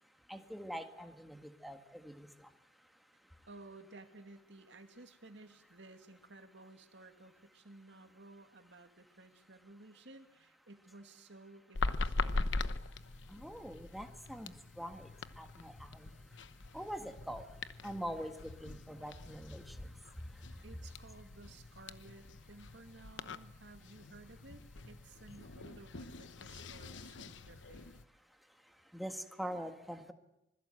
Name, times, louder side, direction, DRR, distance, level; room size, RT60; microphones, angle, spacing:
voice 1, 0.3-2.5 13.3-15.1 15.4-16.1 16.7-20.6 28.7-30.1, equal, ahead, 6 dB, 1.8 m, -44 dB
voice 2, 3.5-12.5 20.6-28.0, right 2 dB, 75° right, 6 dB, 2.3 m, -56 dB
sound 1, 11.7-28.0, left 3 dB, 90° left, 1.0 m, -42 dB
26.0 x 21.0 x 7.8 m, 0.87 s
head